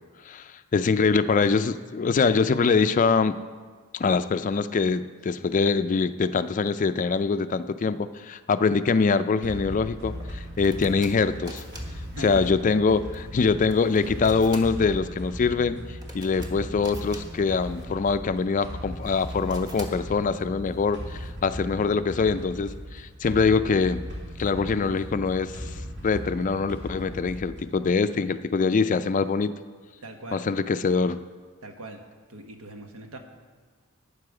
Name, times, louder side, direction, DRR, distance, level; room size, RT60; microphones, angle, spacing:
voice 1, 0.3-3.3 3.9-11.6 12.2-15.8 16.1-24.0 24.4-25.7 26.0-29.5 30.3-31.2, left 4 dB, 35° left, 12 dB, 0.3 m, -24 dB
sound 1, 9.4-27.8, equal, 55° right, 2.6 m, -38 dB
sound 2, 10.1-21.3, right 1 dB, 20° right, 1.2 m, -48 dB
voice 2, 12.1-12.5 30.0-30.4 31.6-32.0 32.3-33.2, right 1 dB, 90° right, 4 dB, 1.2 m, -40 dB
12.5 x 8.7 x 4.8 m, 1.5 s
head